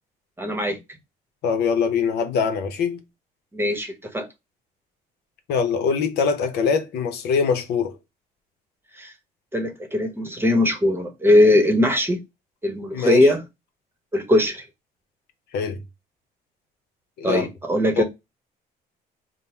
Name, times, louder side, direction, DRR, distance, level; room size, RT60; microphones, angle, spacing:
voice 1, 0.4-0.8 3.5-4.3 9.0-9.1 9.5-12.2 12.6-13.4 14.1-14.6 17.2-18.0, left 1 dB, 15° right, 0.9 m, -20 dB
voice 2, 1.4-3.0 5.5-7.9 12.9-13.3 15.5-15.8 17.2-17.5 18.0-18.1, left 6 dB, 75° left, 0.8 m, -23 dB
3.8 x 2.1 x 4.3 m
cardioid pair, 110°, 17 cm